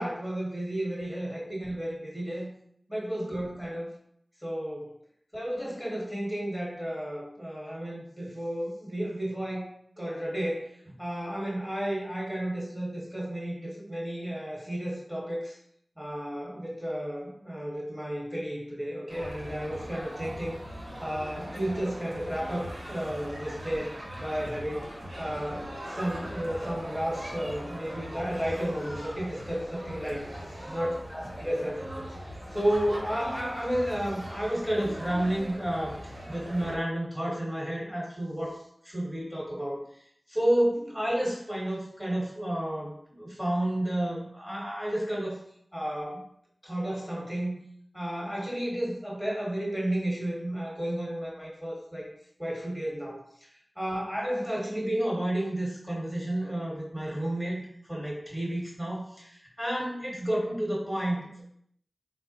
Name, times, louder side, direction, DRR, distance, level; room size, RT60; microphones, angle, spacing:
voice 1, 0.0-2.5 2.9-3.9 4.4-4.9 5.3-9.7 10.0-15.6 16.0-24.9 25.2-30.2 30.7-31.8 32.1-38.6 38.8-39.8 40.3-45.4 45.7-46.2 46.6-47.6 47.9-52.1 52.4-53.2 53.8-61.4, right 1 dB, 10° right, -4 dB, 1.2 m, -32 dB
sound 1, 19.1-36.8, equal, 65° right, 1.1 m, -40 dB
3.2 x 2.0 x 4.1 m, 0.70 s
wide cardioid pair, 40°, 0 cm